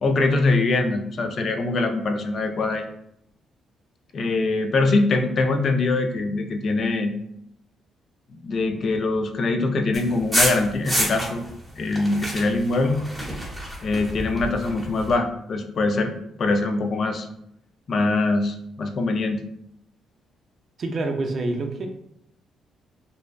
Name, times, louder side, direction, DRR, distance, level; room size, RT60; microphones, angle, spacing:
voice 1, 0.0-2.9 4.1-7.1 8.4-11.4 11.8-13.0 13.8-16.1 16.4-17.3 17.9-19.4, left 3 dB, 50° left, 5 dB, 0.3 m, -23 dB
sound 1, 9.9-11.5 11.8-15.1, equal, 5° left, 0.9 m, -28 dB
voice 2, 20.8-21.9, right 2 dB, 50° right, 4 dB, 0.4 m, -26 dB
2.6 x 2.1 x 2.2 m, 0.74 s
cardioid pair, 90°, 0 cm